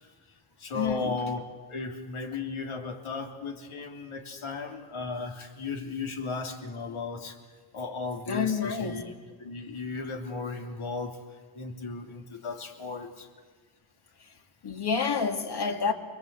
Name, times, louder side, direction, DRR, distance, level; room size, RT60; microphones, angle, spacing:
voice 1, 0.0-7.4 7.7-9.1 9.4-13.3, left 4 dB, 80° left, 2 dB, 3.3 m, -36 dB
voice 2, 0.7-1.2 8.3-9.0 14.6-15.9, left 6 dB, 50° left, 4 dB, 2.6 m, -28 dB
29.5 x 22.0 x 8.3 m, 1.4 s
wide cardioid pair, 125°, 49 cm